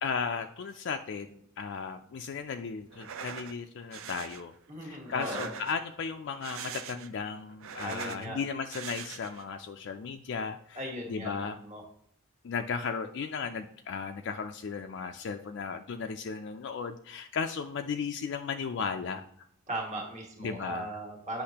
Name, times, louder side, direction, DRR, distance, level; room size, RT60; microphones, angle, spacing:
voice 1, 0.0-4.5 4.8-11.6 12.4-19.5 20.4-20.9, left 5 dB, 55° left, 5 dB, 0.4 m, -35 dB
sound 1, 2.9-3.5 3.9-4.4 5.1-5.9 6.3-7.2 7.5-8.3 8.7-9.5, right 7 dB, 70° right, 0.4 m, -42 dB
voice 2, 4.7-5.5 7.8-8.4 10.7-11.8 19.7-21.4, right 1 dB, 35° right, 1 dB, 1.5 m, -38 dB
8.4 x 5.7 x 2.8 m, 0.69 s
head